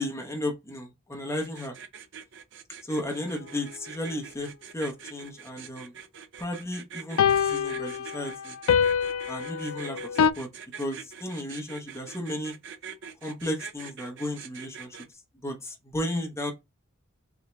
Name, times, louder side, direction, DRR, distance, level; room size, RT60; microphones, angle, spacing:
voice 1, 0.0-1.8 2.8-5.9 6.4-8.5 9.3-10.5 10.8-12.5 13.2-15.0 15.4-16.5, left 1 dB, 15° left, 0.8 m, -34 dB
sound 1, 1.4-15.0, right 7 dB, 55° right, 0.6 m, -44 dB
sound 2, 2.9-3.0 7.2-10.3, left 7 dB, 85° left, 0.4 m, -25 dB
3.7 x 3.0 x 3.3 m
head